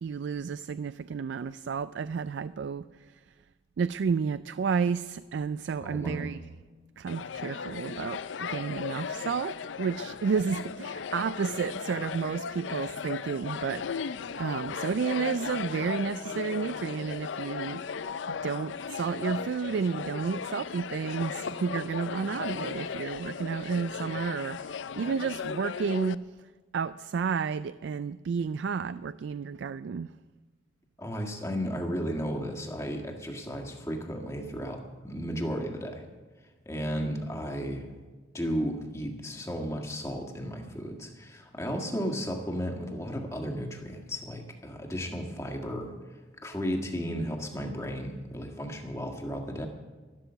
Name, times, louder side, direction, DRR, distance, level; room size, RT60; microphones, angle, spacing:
voice 1, 0.0-3.2 3.8-6.4 7.0-13.8 14.4-18.0 18.3-26.3 26.7-30.1, right 6 dB, 75° right, 14 dB, 0.3 m, -31 dB
voice 2, 5.8-6.3 31.0-36.0 36.6-37.9 38.3-45.9 46.4-49.7, equal, 15° left, 2 dB, 1.6 m, -34 dB
sound 1, 7.1-26.1, left 6 dB, 80° left, 0.5 m, -36 dB
12.5 x 12.5 x 6.8 m, 1.3 s
head